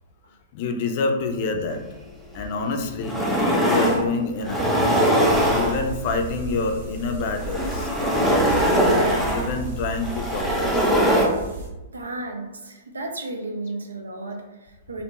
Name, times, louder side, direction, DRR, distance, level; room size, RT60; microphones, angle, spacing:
voice 1, 0.5-1.8 2.3-3.2 3.6-4.7 5.5-8.5 9.3-10.9, left 3 dB, 50° left, 5 dB, 0.4 m, -27 dB
sound 1, 2.4-2.5 2.9-4.0 4.4-6.1 7.2-11.3, equal, 5° right, 0.6 m, -21 dB
sound 2, 5.3-11.7, right 2 dB, 75° right, 0.8 m, -35 dB
voice 2, 11.9-15.0, right 2 dB, 90° right, 3 dB, 0.5 m, -34 dB
2.6 x 2.1 x 3.0 m, 1.0 s
hypercardioid pair, 115°, 0 cm